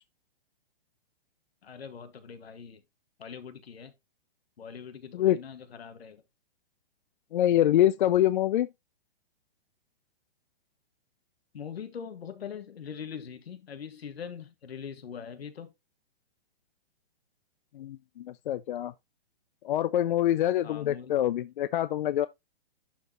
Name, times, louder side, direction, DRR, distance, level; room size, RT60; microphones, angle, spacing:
voice 1, 1.6-2.8 3.2-3.9 4.6-6.2 11.5-15.7 20.6-21.2, left 7 dB, 85° left, 1.9 m, -42 dB
voice 2, 7.3-8.7 17.7-18.9 19.6-22.3, left 12 dB, 55° left, 0.5 m, -25 dB
11.5 x 4.7 x 3.0 m
hypercardioid pair, 150°, 30 cm